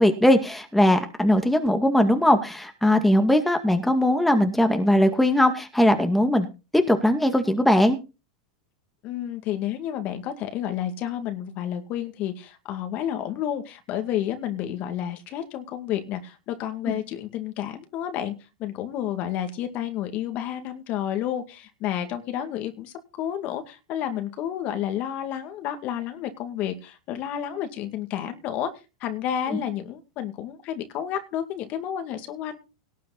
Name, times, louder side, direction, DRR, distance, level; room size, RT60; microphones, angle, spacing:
voice 1, 0.0-6.5 6.7-8.0 16.9-17.0 29.5-29.6, left 1 dB, 5° left, 5 dB, 2.2 m, -20 dB
voice 2, 9.0-18.3 18.6-28.7 29.0-32.6, left 10 dB, 45° left, 7 dB, 2.3 m, -30 dB
18.5 x 7.6 x 4.1 m, 0.30 s
hypercardioid pair, 95°, 3 cm